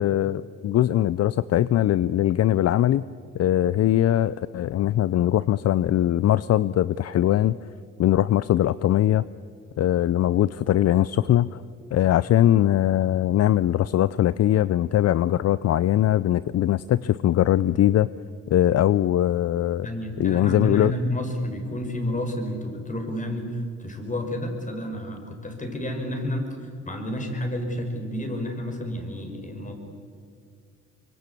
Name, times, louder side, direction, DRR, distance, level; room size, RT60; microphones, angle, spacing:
voice 1, 0.0-3.0 3.3-7.6 8.0-9.2 9.8-11.6 11.9-18.1 18.5-19.9 20.2-20.9, left 12 dB, 55° left, 17 dB, 0.6 m, -21 dB
voice 2, 19.8-29.8, equal, 25° left, 4 dB, 5.5 m, -30 dB
24.5 x 23.5 x 8.5 m, 2.1 s
cardioid pair, 90°, 30 cm